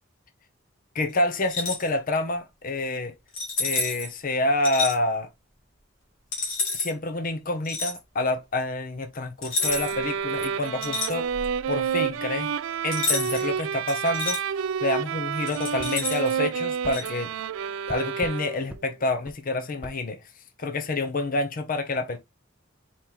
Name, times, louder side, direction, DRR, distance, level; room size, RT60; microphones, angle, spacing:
voice 1, 0.9-3.2 3.6-5.3 6.7-11.3 11.7-12.5 12.8-14.4 14.8-17.3 17.9-20.2 20.6-22.2, left 2 dB, 45° left, 0.7 m, -28 dB
sound 1, 1.4-1.9 3.3-4.1 4.6-5.0 6.3-6.9 7.6-8.0 9.4-10.0 10.4-11.6 12.9-13.5 13.9-14.4 15.5-16.3 16.9-17.1, left 3 dB, 80° left, 2.2 m, -29 dB
sound 2, 9.6-18.8, right 7 dB, 90° right, 0.3 m, -29 dB
sound 3, 15.8-16.0 16.8-17.0 17.9-18.4 18.7-18.9 19.3-19.4 19.8-20.0, equal, 5° right, 0.5 m, -41 dB
4.2 x 3.1 x 3.8 m
head